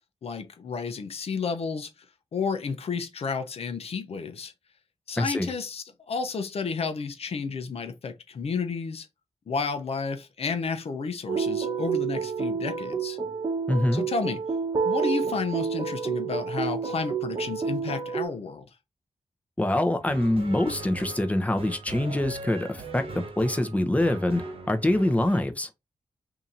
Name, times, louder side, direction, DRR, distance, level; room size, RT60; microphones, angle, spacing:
voice 1, 0.2-1.9 2.3-4.5 5.1-9.1 9.5-13.2 13.9-14.4 14.8-18.6, left 5 dB, 70° left, 0.7 m, -31 dB
voice 2, 5.2-5.5 13.7-14.0 19.6-25.7, left 1 dB, 15° left, 0.8 m, -25 dB
sound 1, 11.3-18.3, right 5 dB, 40° right, 0.9 m, -29 dB
sound 2, 20.0-25.4, right 2 dB, 60° right, 1.1 m, -40 dB
2.8 x 2.7 x 3.7 m
cardioid pair, 55°, 11 cm